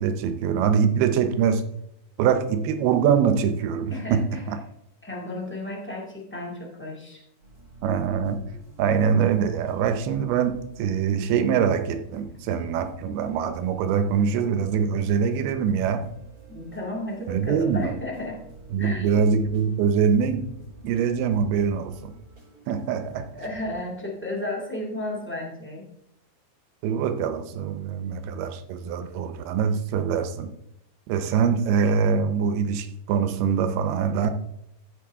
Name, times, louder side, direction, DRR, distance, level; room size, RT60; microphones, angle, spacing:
voice 1, 0.0-1.6 2.2-4.6 7.8-8.4 8.8-16.0 17.3-17.9 18.7-20.5 20.8-22.1 22.7-23.3 26.8-30.5 31.1-34.3, right 7 dB, 85° right, 9 dB, 2.8 m, -23 dB
voice 2, 3.9-4.5 5.0-7.2 16.5-18.4 18.8-19.3 23.3-25.9, left 1 dB, 5° left, -2 dB, 0.8 m, -33 dB
sound 1, 7.4-23.8, right 2 dB, 25° right, 4.3 m, -49 dB
14.5 x 7.7 x 3.5 m, 0.81 s
omnidirectional pair, 4.4 m